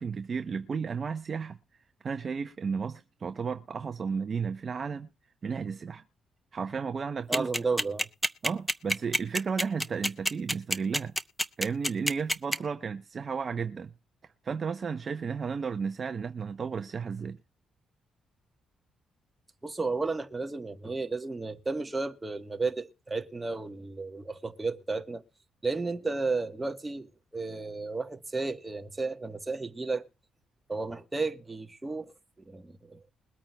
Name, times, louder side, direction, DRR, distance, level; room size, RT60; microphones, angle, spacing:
voice 1, 0.0-1.6 2.0-5.1 5.4-6.0 6.5-7.5 8.4-11.1 11.6-13.9 14.4-17.4, right 5 dB, 45° right, 0.7 m, -33 dB
sound 1, 7.3-12.5, equal, 5° left, 0.7 m, -26 dB
voice 2, 7.3-8.1 19.6-25.2 25.6-30.1 30.7-32.1 32.5-33.0, right 3 dB, 20° right, 1.2 m, -33 dB
22.0 x 8.7 x 2.3 m
cardioid pair, 90°, 0 cm